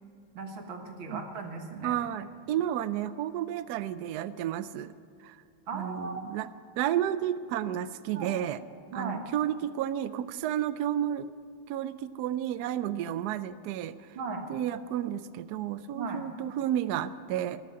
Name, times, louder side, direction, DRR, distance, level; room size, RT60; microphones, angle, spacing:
voice 1, 0.3-2.0 5.7-6.2 8.1-8.4 8.9-9.2 14.2-14.4 15.9-16.2, right 3 dB, 70° right, 3 dB, 2.2 m, -37 dB
voice 2, 1.8-4.9 5.2-5.4 5.7-6.5 6.8-8.6 8.9-11.3 11.7-14.0 14.5-17.6, right 11 dB, 85° right, 13 dB, 0.8 m, -31 dB
19.5 x 6.7 x 9.4 m, 2.4 s
omnidirectional pair, 2.3 m